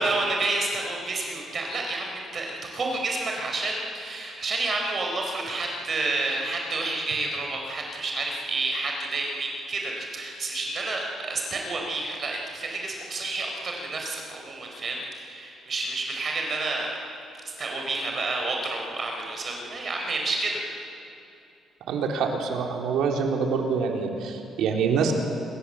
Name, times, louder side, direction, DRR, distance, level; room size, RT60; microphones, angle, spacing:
voice 1, 0.0-17.0 17.6-20.6, right 2 dB, 35° right, 1 dB, 4.7 m, -29 dB
voice 2, 21.9-25.1, right 5 dB, 85° right, 1 dB, 3.9 m, -25 dB
27.0 x 25.5 x 7.8 m, 2.8 s
cardioid pair, 135°, 0 cm